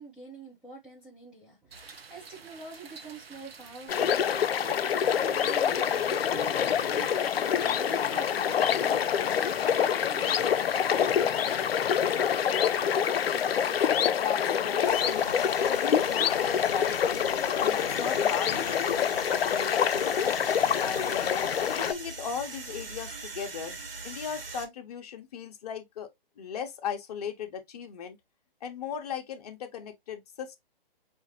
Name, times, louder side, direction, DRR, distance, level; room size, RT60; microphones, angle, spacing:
voice 1, 0.0-11.6, right 3 dB, 5° right, 0.5 m, -46 dB
sound 1, 1.7-14.0, right 5 dB, 90° right, 0.8 m, -49 dB
sound 2, 3.9-21.9, left 8 dB, 85° left, 0.4 m, -26 dB
voice 2, 14.1-17.2 17.6-20.4 20.8-21.4 21.7-23.8 24.0-26.1 26.4-28.2 28.6-30.6, left 7 dB, 40° left, 0.9 m, -37 dB
sound 3, 14.8-24.6, right 3 dB, 70° right, 1.4 m, -42 dB
5.4 x 2.5 x 2.8 m
hypercardioid pair, 145°, 29 cm